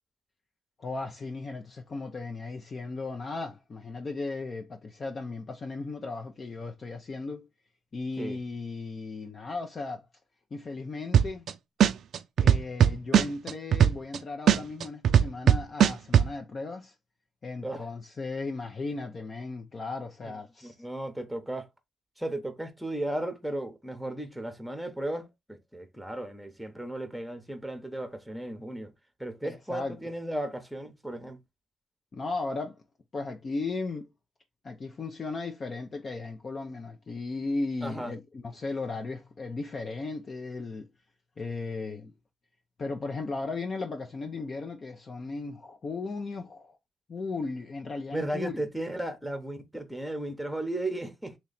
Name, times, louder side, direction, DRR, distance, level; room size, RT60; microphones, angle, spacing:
voice 1, 0.8-7.5 7.9-10.1 10.5-11.4 12.4-16.9 17.4-20.7 29.4-30.0 32.1-32.8 33.1-34.1 34.6-40.9 41.4-42.1 42.8-46.8 47.1-48.6, left 3 dB, 40° left, 0.6 m, -36 dB
sound 1, 11.1-11.5 11.8-14.2 14.5-16.3, right 9 dB, 65° right, 0.4 m, -19 dB
voice 2, 20.6-21.7 22.2-28.9 29.2-31.4 37.8-38.1 48.1-51.4, right 1 dB, ahead, 0.9 m, -35 dB
3.1 x 2.9 x 4.0 m
cardioid pair, 90°, 0 cm